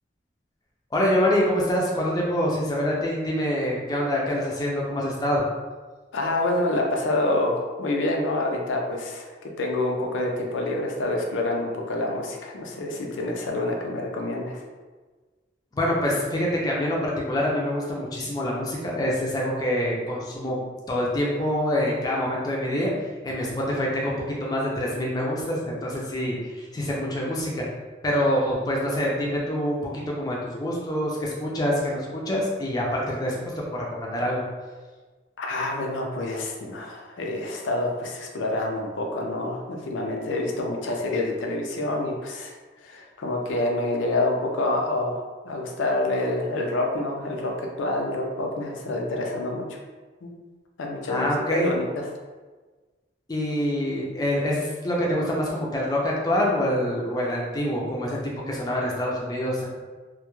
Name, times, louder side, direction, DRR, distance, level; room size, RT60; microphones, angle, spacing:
voice 1, 0.9-5.5 15.7-20.6 20.9-22.9 23.2-27.7 28.0-29.8 30.1-34.4 51.1-51.7 53.3-58.2 58.5-59.6, equal, 20° left, -3 dB, 0.3 m, -26 dB
voice 2, 6.1-14.6 35.4-42.5 42.8-49.6 50.2-50.3 50.8-51.9, left 2 dB, 90° left, 1 dB, 0.4 m, -27 dB
2.2 x 2.0 x 2.9 m, 1.4 s
head